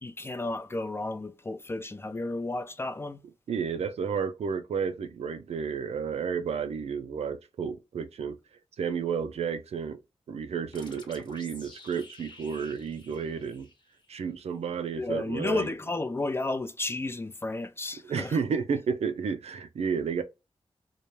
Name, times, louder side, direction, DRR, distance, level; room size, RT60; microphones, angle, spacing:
voice 1, 0.0-3.2 15.0-18.4, left 2 dB, 20° left, 0.3 m, -32 dB
voice 2, 3.5-8.4 8.8-10.0 10.3-13.7 14.1-15.7 18.0-20.2, right 6 dB, 70° right, 0.4 m, -31 dB
sound 1, 10.7-14.2, left 2 dB, 45° left, 0.9 m, -51 dB
2.2 x 2.1 x 3.0 m
cardioid pair, 60°, 11 cm